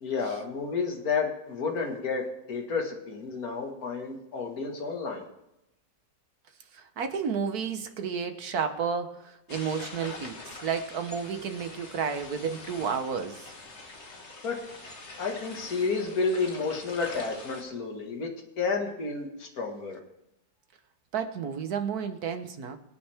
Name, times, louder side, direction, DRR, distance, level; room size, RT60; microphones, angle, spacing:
voice 1, 0.0-5.3 14.4-14.6 15.2-18.3 18.6-20.0, left 4 dB, 55° left, 2.3 m, -31 dB
voice 2, 6.7-10.4 10.6-13.5 21.1-22.8, right 6 dB, 60° right, 1.6 m, -31 dB
sound 1, 9.5-17.6, left 2 dB, 40° left, 2.1 m, -44 dB
25.5 x 8.6 x 3.5 m
omnidirectional pair, 1.8 m